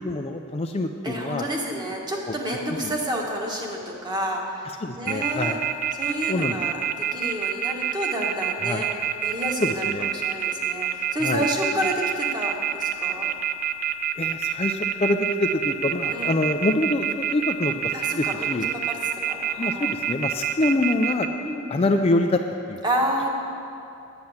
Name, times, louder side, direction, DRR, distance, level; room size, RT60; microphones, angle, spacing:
voice 1, 0.0-1.4 2.3-3.0 4.8-5.6 6.3-6.6 8.6-8.8 9.6-10.1 11.2-11.4 14.2-18.7 19.6-21.3 21.7-22.4 22.7-22.8, left 2 dB, 25° left, 5 dB, 0.4 m, -25 dB
voice 2, 1.0-5.6 6.0-8.9 9.2-13.3 16.1-16.3 17.9-19.0 19.2-19.9 21.4-21.6 22.8-23.3, right 1 dB, 20° right, -1 dB, 1.4 m, -30 dB
sound 1, 5.1-21.3, right 10 dB, 40° right, 0.5 m, -26 dB
9.5 x 9.1 x 7.2 m, 2.7 s
head